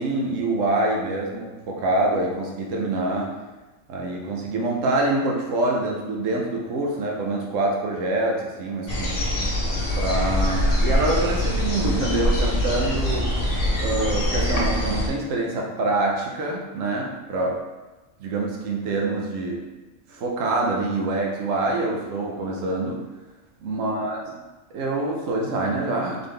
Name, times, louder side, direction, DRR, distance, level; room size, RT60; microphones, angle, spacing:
voice 1, 0.0-3.4 3.9-9.3 10.0-13.4 13.8-17.6 18.2-19.6 20.1-23.1 23.6-24.2 24.7-26.3, right 2 dB, 75° right, -1 dB, 1.1 m, -25 dB
sound 1, 8.9-15.1, left 1 dB, 50° left, 1.0 m, -23 dB
4.0 x 3.6 x 3.3 m, 1.1 s
omnidirectional pair, 1.3 m